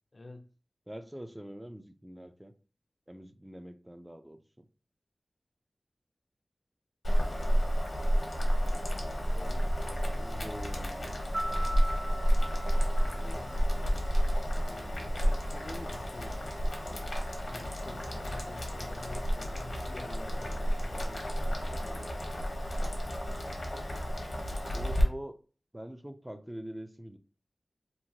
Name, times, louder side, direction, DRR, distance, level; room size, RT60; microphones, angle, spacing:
voice 1, 0.1-0.5 9.2-10.4 13.2-13.6 14.4-16.6 17.5-22.4, left 2 dB, 50° left, 0.5 m, -49 dB
voice 2, 0.9-2.5 3.1-4.7 10.2-11.1 24.7-25.4 25.7-27.2, right 1 dB, 15° right, 0.4 m, -44 dB
Boiling, 7.0-25.0, equal, 65° left, 0.8 m, -31 dB
Piano, 11.3-14.1, right 1 dB, 55° right, 0.6 m, -39 dB
2.9 x 2.1 x 2.7 m
cardioid pair, 40°, 0 cm